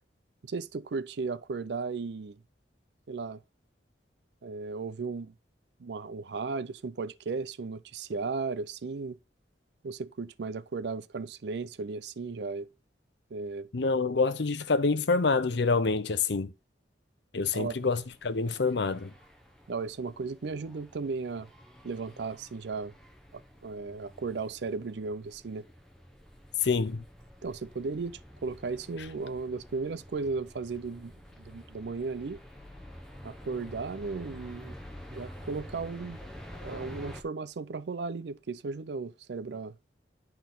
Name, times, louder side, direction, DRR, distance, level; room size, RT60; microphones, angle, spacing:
voice 1, 0.4-2.4 3.1-3.4 4.4-5.3 5.8-9.2 9.8-12.7 13.3-13.7 17.5-17.8 19.7-21.5 21.8-23.0 23.3-25.7 27.4-32.4 33.2-34.7 35.1-36.2 36.6-39.8, right 4 dB, 65° right, 0.5 m, -35 dB
voice 2, 13.7-16.5 17.3-19.1 26.6-27.0, left 4 dB, 70° left, 0.7 m, -27 dB
sound 1, 17.4-37.2, equal, 5° left, 0.9 m, -49 dB
10.5 x 4.0 x 3.9 m
head